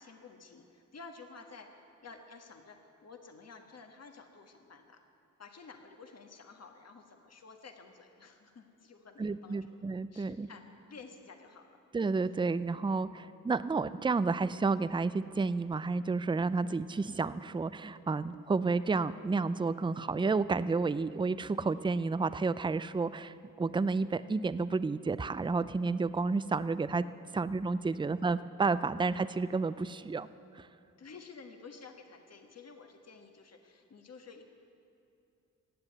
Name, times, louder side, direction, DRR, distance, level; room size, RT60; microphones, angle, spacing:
voice 1, 0.0-5.0 5.4-10.6 10.9-11.8 27.2-27.4 27.9-28.0 28.9-29.0 31.0-34.4, left 4 dB, 50° left, 5 dB, 1.5 m, -52 dB
voice 2, 9.2-10.5 11.9-27.0 27.3-30.3 30.5-30.7, right 4 dB, 15° right, 15 dB, 0.4 m, -31 dB
17.0 x 7.8 x 9.5 m, 2.7 s
cardioid pair, 70°, 33 cm